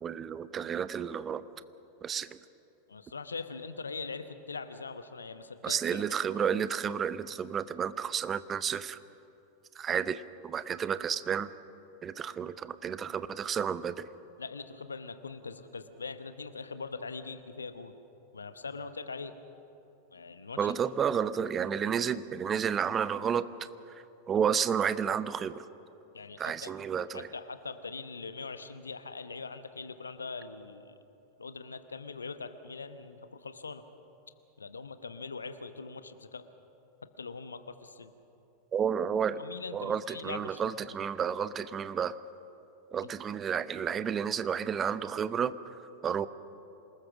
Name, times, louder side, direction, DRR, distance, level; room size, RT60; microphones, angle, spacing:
voice 1, 0.0-1.4 2.0-2.4 5.6-9.0 9.8-11.5 12.0-14.0 20.6-23.5 24.3-25.7 26.4-27.3 38.7-39.4 39.7-42.1 42.9-45.5 46.0-46.3, right 7 dB, 25° right, 15 dB, 0.7 m, -31 dB
voice 2, 2.9-6.0 6.4-6.5 14.4-17.9 18.3-19.3 20.1-20.7 26.1-26.7 27.1-30.9 31.4-33.8 34.6-36.5 37.2-38.1 39.3-40.8, left 4 dB, 75° left, 11 dB, 0.9 m, -42 dB
27.0 x 19.5 x 6.2 m, 3.0 s
figure-of-eight pair, 90°, 0 cm